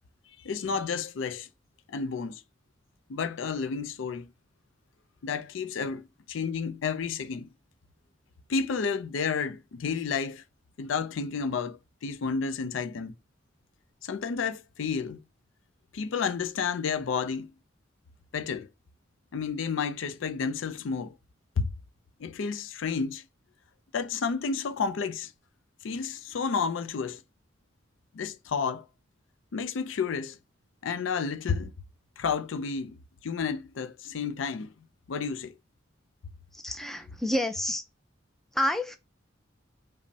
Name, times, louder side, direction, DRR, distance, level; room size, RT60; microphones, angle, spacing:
voice 1, 0.4-1.5 1.9-2.4 3.1-4.3 5.2-7.5 8.5-10.4 10.8-13.1 14.0-15.2 15.9-17.5 18.3-18.7 19.3-21.1 21.6-21.7 22.2-23.2 23.9-25.3 25.8-27.2 28.1-28.8 29.5-30.4 30.8-31.7 32.2-33.0 33.2-34.7 35.1-35.5, left 5 dB, 70° left, 0.4 m, -31 dB
voice 2, 36.5-37.8 38.5-39.0, left 1 dB, ahead, 0.4 m, -29 dB
5.1 x 2.1 x 2.7 m
head